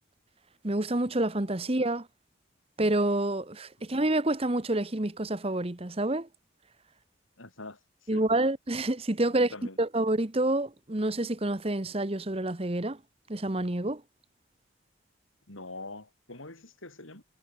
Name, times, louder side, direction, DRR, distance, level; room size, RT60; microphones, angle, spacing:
voice 1, 0.6-2.1 2.8-6.3 8.1-13.0 13.3-14.0, right 1 dB, 30° right, 1.1 m, -28 dB
voice 2, 7.4-8.2 9.3-9.8 15.5-17.2, left 2 dB, 85° left, 7.1 m, -45 dB
head